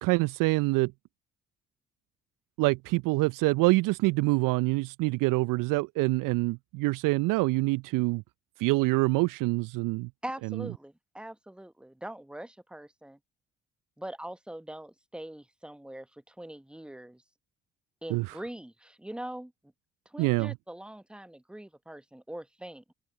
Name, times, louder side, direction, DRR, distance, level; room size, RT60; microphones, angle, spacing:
voice 1, 0.0-0.9 2.6-8.2 8.6-10.1 10.5-10.6 18.1-18.3 20.2-20.5, right 23 dB, 60° right, 0.5 m, -26 dB
voice 2, 10.2-13.2 14.0-17.2 18.0-19.5 20.0-22.9, right 1 dB, 5° right, 1.1 m, -42 dB
hypercardioid pair, 45°, 36 cm